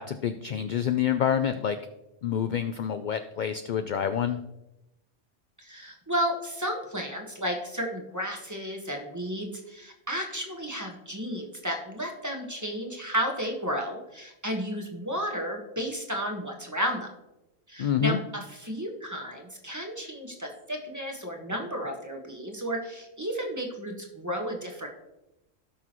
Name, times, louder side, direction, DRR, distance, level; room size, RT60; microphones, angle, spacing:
voice 1, 0.0-1.8 2.2-4.4 17.8-18.2, left 8 dB, 65° left, 9 dB, 0.4 m, -27 dB
voice 2, 5.6-17.1 17.7-24.9, equal, 15° right, 2 dB, 1.3 m, -33 dB
17.5 x 6.0 x 3.0 m, 0.94 s
omnidirectional pair, 1.3 m